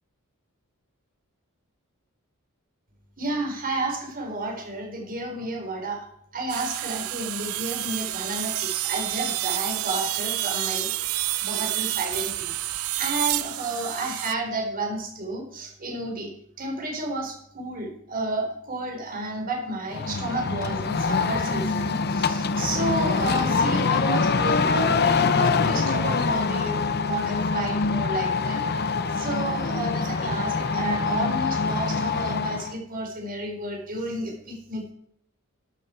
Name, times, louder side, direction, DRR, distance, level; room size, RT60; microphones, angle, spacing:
voice 1, 3.2-6.1 6.3-12.5 13.0-16.3 16.6-28.6 29.1-34.9, right 2 dB, 40° right, 1 dB, 4.2 m, -31 dB
sound 1, 6.5-14.3, right 15 dB, 70° right, 0.6 m, -29 dB
sound 2, 19.9-32.7, left 4 dB, 45° left, 0.8 m, -24 dB
12.5 x 12.0 x 4.5 m, 0.70 s
head